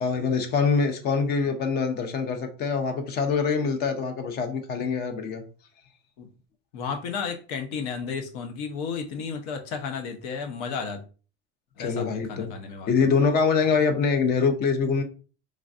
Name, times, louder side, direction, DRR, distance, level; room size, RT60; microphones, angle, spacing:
voice 1, 0.0-5.4 11.8-12.5 12.9-15.0, left 5 dB, 35° left, 0.5 m, -24 dB
voice 2, 6.7-11.0 11.8-12.9, left 5 dB, 70° left, 0.7 m, -33 dB
3.2 x 2.4 x 2.4 m
cardioid pair, 150°, 29 cm